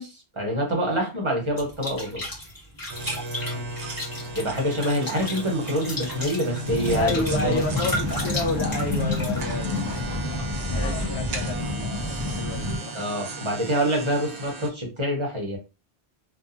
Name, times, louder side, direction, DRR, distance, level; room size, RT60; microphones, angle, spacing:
voice 1, 0.0-2.2 4.3-7.6 12.9-15.6, equal, 30° right, 0.9 m, -26 dB
sound 1, 1.6-9.4, left 1 dB, 20° left, 1.1 m, -35 dB
sound 2, 2.9-14.7, right 2 dB, 85° right, 1.0 m, -35 dB
sound 3, 6.7-12.8, left 2 dB, 35° left, 0.4 m, -29 dB
voice 2, 6.9-9.8 10.7-12.9, left 3 dB, 75° left, 0.9 m, -31 dB
2.7 x 2.4 x 2.5 m
omnidirectional pair, 1.1 m